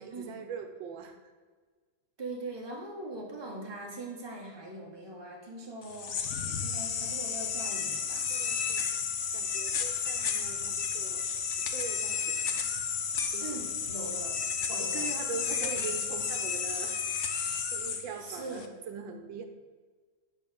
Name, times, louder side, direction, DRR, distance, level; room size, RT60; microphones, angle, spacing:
voice 1, 0.0-1.3 8.2-8.8 9.3-11.2 11.6-12.4 13.3-13.6 14.7-17.3 17.7-19.5, right 6 dB, 75° right, 5 dB, 1.5 m, -42 dB
voice 2, 2.2-6.2 6.6-8.3 13.4-14.4 14.7-15.1 15.5-15.9 18.2-18.7, right 2 dB, 15° right, -1 dB, 1.4 m, -41 dB
sound 1, 5.8-18.7, left 6 dB, 60° left, 0.8 m, -32 dB
9.8 x 4.5 x 7.1 m, 1.5 s
omnidirectional pair, 2.1 m